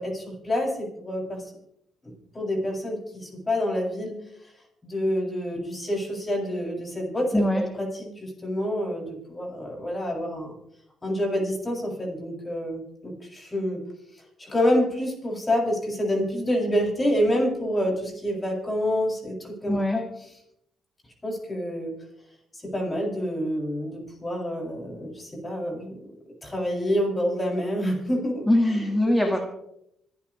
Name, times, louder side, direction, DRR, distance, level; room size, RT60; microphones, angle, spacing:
voice 1, 0.0-1.4 2.0-4.2 4.8-10.6 11.0-13.8 14.4-20.0 21.2-22.0 22.5-26.0 26.4-28.9 29.2-29.3, equal, 25° left, -2 dB, 7.7 m, -27 dB
voice 2, 7.3-7.7 19.7-20.0 28.5-29.4, left 1 dB, 5° left, 3 dB, 2.0 m, -22 dB
26.0 x 11.5 x 3.4 m, 0.78 s
cardioid pair, 90°, 0 cm